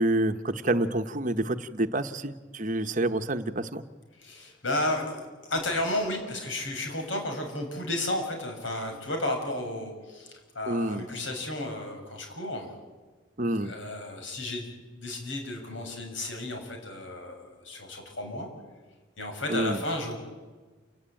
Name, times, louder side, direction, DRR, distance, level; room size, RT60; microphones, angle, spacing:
voice 1, 0.0-3.8 10.7-11.0 13.4-13.7 19.5-19.8, right 1 dB, 40° right, 9 dB, 1.0 m, -28 dB
voice 2, 4.1-12.7 13.6-14.7 14.9-18.5 19.2-20.2, left 1 dB, 75° left, 3 dB, 6.8 m, -33 dB
28.5 x 18.5 x 8.9 m, 1.3 s
head